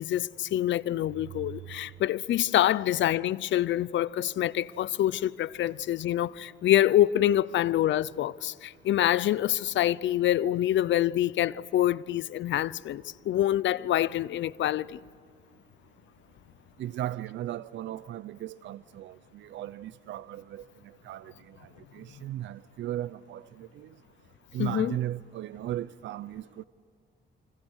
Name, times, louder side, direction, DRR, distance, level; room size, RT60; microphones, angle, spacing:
voice 1, 0.0-15.0 24.6-25.0, left 12 dB, 70° left, 0.6 m, -26 dB
voice 2, 16.8-20.6 21.0-21.6 21.9-23.9 24.5-26.6, right 13 dB, 70° right, 0.5 m, -36 dB
28.5 x 25.5 x 6.4 m
cardioid pair, 90°, 20 cm